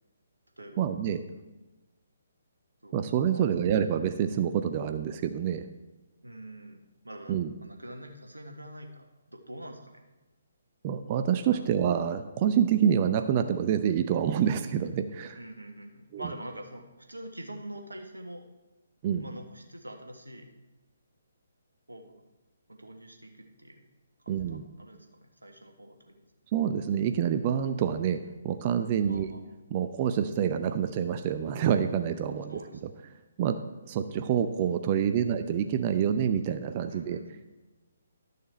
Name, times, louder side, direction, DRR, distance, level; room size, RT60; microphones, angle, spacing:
voice 1, 0.8-1.2 2.9-5.7 7.3-7.5 10.8-15.4 16.1-16.2 19.0-19.2 24.3-24.7 26.5-28.2 28.4-29.3 29.7-32.6 33.4-33.6 33.9-37.2, right 8 dB, 30° right, 8 dB, 0.6 m, -27 dB
voice 2, 6.2-10.0 11.5-11.6 15.3-18.5 19.2-20.5 21.9-22.2 22.7-23.8 24.2-26.3 29.0-29.4 32.5-33.0 35.0-35.4 36.9-37.4, right 1 dB, 80° right, 4 dB, 1.6 m, -45 dB
12.5 x 6.6 x 4.3 m, 1.1 s
figure-of-eight pair, 135°, 0 cm